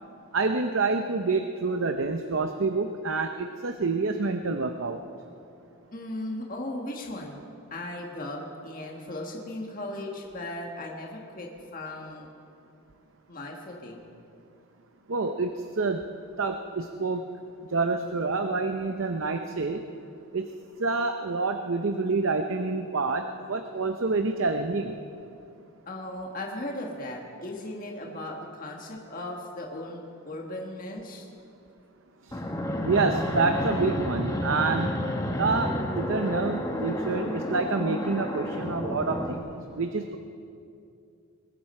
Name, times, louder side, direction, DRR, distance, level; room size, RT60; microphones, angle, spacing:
voice 1, 0.3-5.0 15.1-16.0 16.4-17.2 17.7-19.8 20.3-20.5 20.8-24.9 32.3-32.4 32.8-35.1 35.4-40.2, right 3 dB, 60° right, 6 dB, 0.7 m, -27 dB
voice 2, 5.9-7.4 7.7-12.3 13.3-14.0 25.9-31.3, left 1 dB, 40° left, 0 dB, 1.6 m, -37 dB
Fixed-wing aircraft airplane, 32.3-39.4, left 1 dB, 15° left, 1.1 m, -30 dB
21.5 x 15.0 x 4.4 m, 2.6 s
head